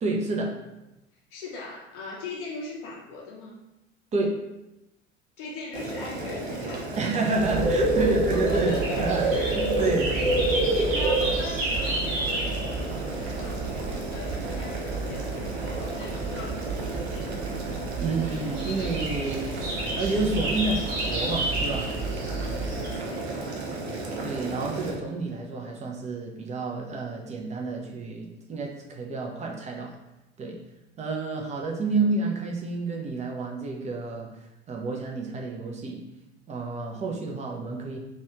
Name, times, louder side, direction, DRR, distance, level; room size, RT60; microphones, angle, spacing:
voice 1, 0.0-0.6 4.1-4.4 7.0-10.2 18.0-21.9 23.5-23.8 24.2-30.0 30.4-30.6 31.0-34.3 34.7-36.0 36.5-38.0, right 3 dB, 20° right, 0 dB, 0.5 m, -29 dB
voice 2, 1.3-3.6 5.4-7.0 8.0-9.8 10.1-17.5 22.8-24.3, left 3 dB, 60° left, -2 dB, 0.6 m, -40 dB
Boiling, 5.7-24.9, right 2 dB, 75° right, 0.6 m, -35 dB
sound 1, 7.4-22.9, right 2 dB, 50° right, 0.9 m, -29 dB
3.1 x 2.3 x 2.9 m, 0.94 s
figure-of-eight pair, 70°, 33 cm